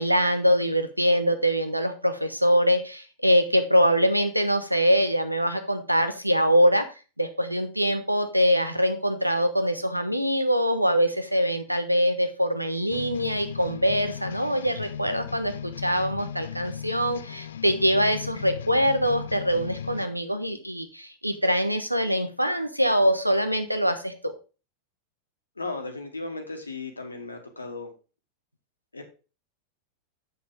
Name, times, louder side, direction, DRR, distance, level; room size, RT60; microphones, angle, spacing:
voice 1, 0.0-6.8 7.2-24.3, equal, 90° right, 8 dB, 1.0 m, -23 dB
sound 1, 12.9-20.1, left 8 dB, 65° left, 0.4 m, -37 dB
voice 2, 25.6-27.9 28.9-29.0, left 3 dB, 80° left, 4 dB, 1.6 m, -35 dB
7.6 x 7.1 x 3.7 m, 0.32 s
figure-of-eight pair, 90°, 0 cm